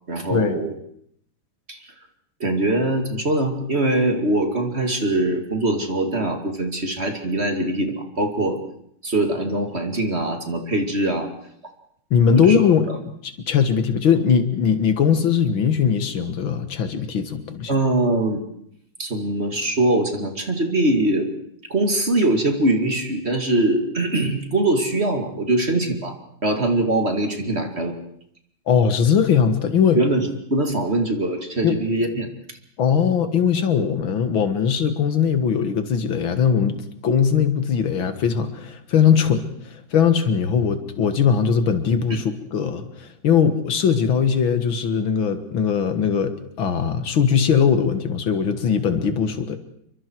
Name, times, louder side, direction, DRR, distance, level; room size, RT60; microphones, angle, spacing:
voice 1, 0.1-0.7 1.7-1.8 2.4-8.6 9.0-11.3 12.4-12.6 17.7-18.4 19.0-21.3 21.7-26.2 26.4-27.9 29.9-32.3 42.1-42.2, right 1 dB, 35° right, 4 dB, 2.5 m, -22 dB
voice 2, 12.1-12.9 13.5-17.7 28.7-30.0 31.6-31.8 32.8-36.8 37.0-39.5 39.7-49.6, left 7 dB, 85° left, 9 dB, 2.4 m, -20 dB
28.5 x 23.5 x 4.7 m, 0.70 s
omnidirectional pair, 2.1 m